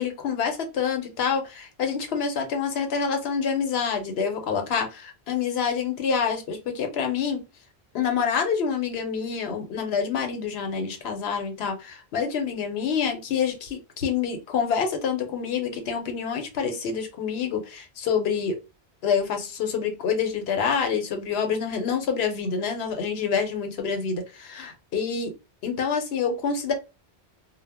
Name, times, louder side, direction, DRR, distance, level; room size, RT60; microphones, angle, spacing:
voice 1, 0.0-7.4 7.9-18.6 19.0-25.3 25.6-26.7, left 6 dB, 75° left, 0.9 m, -27 dB
2.1 x 2.0 x 3.4 m
omnidirectional pair, 1.1 m